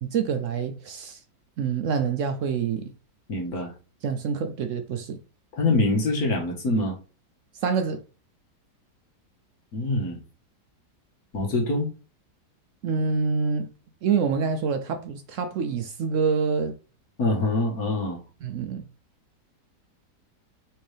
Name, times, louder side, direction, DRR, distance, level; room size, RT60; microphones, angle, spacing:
voice 1, 0.0-1.2 1.6-2.9 4.0-5.2 7.6-8.0 12.8-13.7 14.0-16.7 18.4-18.8, right 6 dB, 70° right, 0.8 m, -26 dB
voice 2, 3.3-3.7 5.5-7.0 9.7-10.2 11.3-11.9 17.2-18.2, left 2 dB, 65° left, 1.8 m, -24 dB
4.5 x 3.6 x 3.2 m
omnidirectional pair, 1.7 m